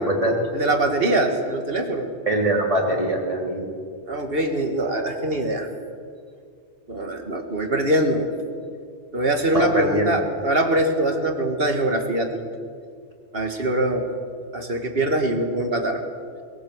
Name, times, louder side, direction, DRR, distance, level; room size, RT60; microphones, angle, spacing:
voice 1, 0.0-0.4 2.3-3.7 9.5-10.1, right 1 dB, 30° right, -1 dB, 3.6 m, -23 dB
voice 2, 0.5-2.1 4.1-5.7 6.9-8.3 9.1-12.3 13.3-14.0 14.5-16.0, right 1 dB, 55° right, 4 dB, 2.4 m, -23 dB
21.5 x 17.5 x 8.1 m, 2.2 s
omnidirectional pair, 1.2 m